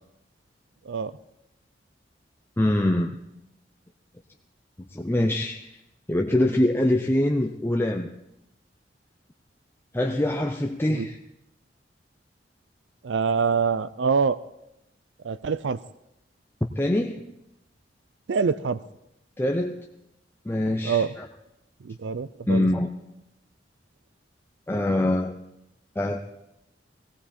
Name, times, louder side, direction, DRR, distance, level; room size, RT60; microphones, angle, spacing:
voice 1, 2.6-3.2 4.8-5.8 6.1-8.1 9.9-11.2 16.8-17.2 19.4-19.8 20.4-21.3 22.5-22.9 24.7-25.3 26.0-26.2, left 1 dB, 15° left, 3 dB, 0.6 m, -24 dB
voice 2, 13.0-14.4 15.2-15.8 18.3-18.8 20.8-21.1 21.8-22.7, right 5 dB, 80° right, 16 dB, 0.5 m, -25 dB
17.0 x 17.0 x 4.3 m, 0.86 s
head